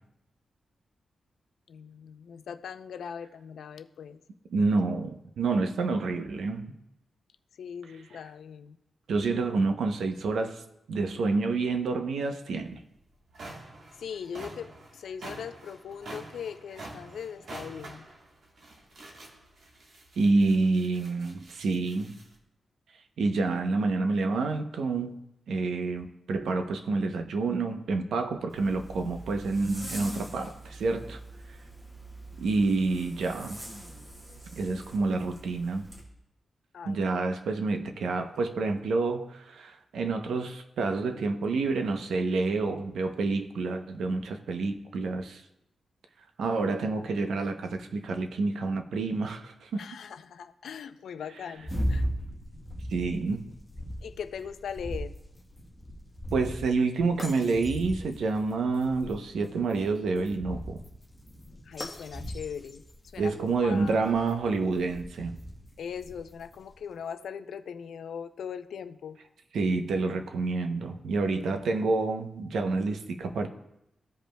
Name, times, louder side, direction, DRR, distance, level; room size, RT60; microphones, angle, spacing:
voice 1, 1.7-4.2 7.6-8.8 14.0-14.7 14.9-18.0 36.7-37.0 49.8-52.0 54.0-55.1 61.7-62.8 63.1-63.3 63.6-64.0 65.8-69.2, left 7 dB, 85° left, 11 dB, 0.4 m, -40 dB
voice 2, 4.5-6.7 7.9-8.2 9.1-10.6 10.9-12.8 20.2-22.2 23.2-31.2 32.4-33.6 34.6-35.9 36.8-45.4 46.4-49.9 51.3-51.7 52.9-53.4 56.3-60.8 63.2-65.4 69.5-73.5, right 3 dB, 85° right, 6 dB, 0.7 m, -28 dB
sound 1, 12.6-12.7 13.1-22.4, right 2 dB, 60° right, 1.2 m, -47 dB
Zipper (clothing), 28.5-36.0, right 1 dB, 25° right, 1.8 m, -44 dB
sound 2, 51.6-66.8, equal, 10° left, 1.2 m, -38 dB
15.5 x 5.2 x 2.2 m, 0.85 s
wide cardioid pair, 175°, 0 cm